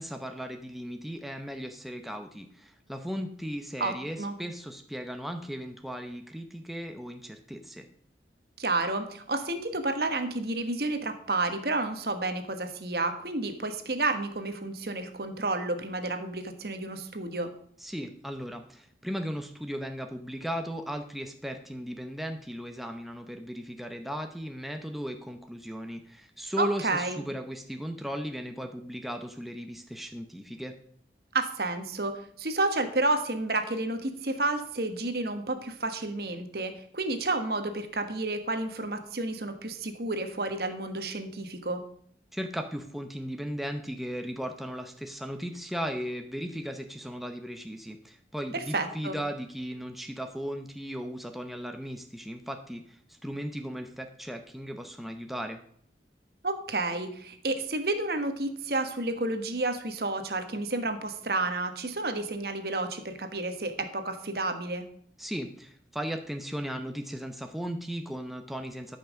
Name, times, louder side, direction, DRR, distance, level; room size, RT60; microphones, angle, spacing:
voice 1, 0.0-7.9 17.8-30.8 42.3-55.6 65.2-69.0, equal, ahead, 5 dB, 0.7 m, -36 dB
voice 2, 3.8-4.3 8.6-17.5 26.6-27.2 31.3-41.8 48.5-49.2 56.4-64.8, right 2 dB, 60° right, 7 dB, 1.3 m, -31 dB
12.5 x 5.7 x 6.4 m, 0.63 s
head